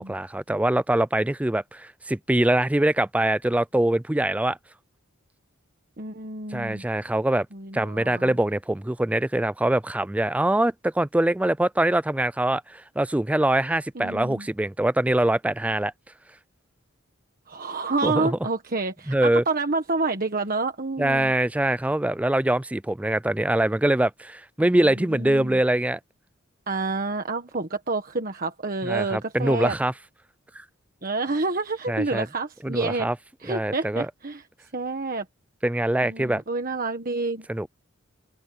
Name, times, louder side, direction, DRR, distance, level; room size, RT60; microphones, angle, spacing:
voice 1, 0.0-4.6 6.5-7.5 7.7-15.9 18.0-18.3 19.1-19.4 21.0-26.0 28.8-29.9 30.6-30.7 31.9-32.3 32.6-33.1 33.5-34.1 35.6-36.4 37.5-37.7, right 1 dB, 5° right, 0.3 m, -23 dB
voice 2, 6.0-6.8 7.5-8.3 13.9-14.5 17.5-21.3 25.1-25.6 26.7-29.7 31.0-33.1 33.4-34.4 34.7-35.2 36.0-37.5, right 3 dB, 40° right, 1.4 m, -28 dB
open air
head